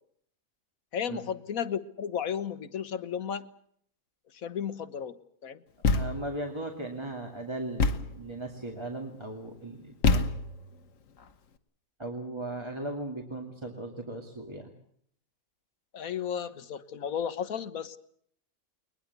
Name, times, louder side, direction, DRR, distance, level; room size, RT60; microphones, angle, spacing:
voice 1, 0.9-3.5 4.3-5.6 15.9-18.0, left 8 dB, 85° left, 13 dB, 1.6 m, -34 dB
Thump thud, 5.8-6.4 7.8-8.2 10.0-10.7, left 4 dB, 70° left, 1.5 m, -26 dB
voice 2, 5.9-10.3 12.0-14.7, right 1 dB, 20° right, 2 dB, 2.3 m, -37 dB
21.5 x 21.0 x 8.2 m, 0.66 s
omnidirectional pair, 1.4 m